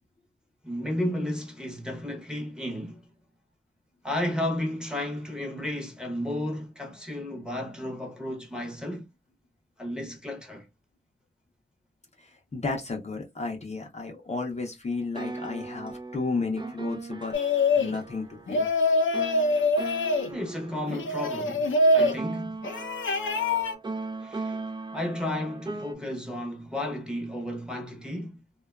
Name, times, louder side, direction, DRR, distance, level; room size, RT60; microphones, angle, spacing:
voice 1, 0.6-3.1 4.0-9.1 9.8-10.7 20.3-22.6 24.2-24.6 24.9-28.4, left 1 dB, 5° right, 0.8 m, -33 dB
voice 2, 12.2-17.3 17.8-18.7, left 3 dB, 35° left, 0.6 m, -33 dB
sound 1, 14.9-25.9, right 3 dB, 25° right, 0.3 m, -38 dB
sound 2, 17.3-18.0 18.5-20.3 20.9-22.2 22.6-23.7, left 2 dB, 80° left, 0.5 m, -24 dB
2.6 x 2.2 x 2.2 m
wide cardioid pair, 75°, 20 cm